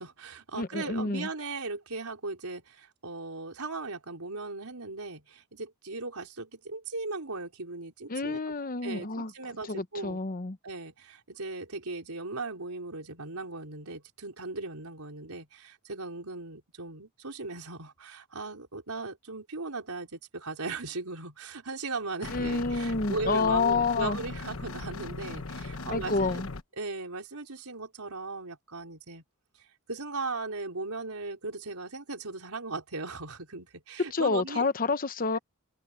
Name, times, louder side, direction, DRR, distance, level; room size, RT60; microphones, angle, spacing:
voice 1, 0.0-8.4 8.8-10.2 10.6-26.4 26.8-29.2 29.9-34.7, right 3 dB, 85° right, 4.0 m, -38 dB
voice 2, 0.5-1.3 8.1-9.3 9.7-10.6 22.3-24.2 25.9-26.5 34.1-35.4, left 4 dB, 40° left, 0.9 m, -28 dB
sound 1, 22.2-26.6, left 3 dB, 65° left, 1.2 m, -38 dB
open air
head